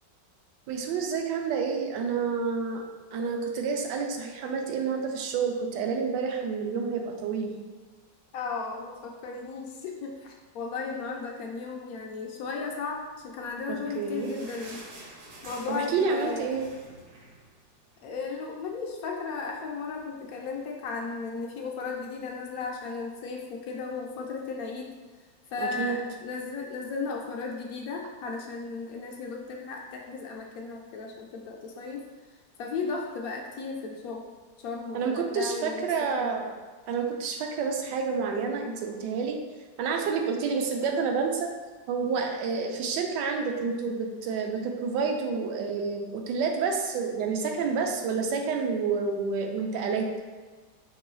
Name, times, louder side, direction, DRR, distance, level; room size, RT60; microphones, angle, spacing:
voice 1, 0.7-2.8 3.1-7.6 13.7-14.3 15.7-16.7 25.6-26.0 34.9-36.5 36.9-39.4 39.8-41.5 41.9-50.1, right 5 dB, 75° right, 3 dB, 1.2 m, -29 dB
voice 2, 8.3-14.8 15.4-16.6 18.0-24.9 25.5-32.1 32.6-34.2 34.6-36.3 40.4-40.5, left 4 dB, 75° left, 1 dB, 0.8 m, -35 dB
sound 1, 13.5-18.2 18.5-18.6 18.9-19.1 19.7-19.8, right 2 dB, 60° right, 1.0 m, -48 dB
5.4 x 2.9 x 3.1 m, 1.4 s
omnidirectional pair, 2.0 m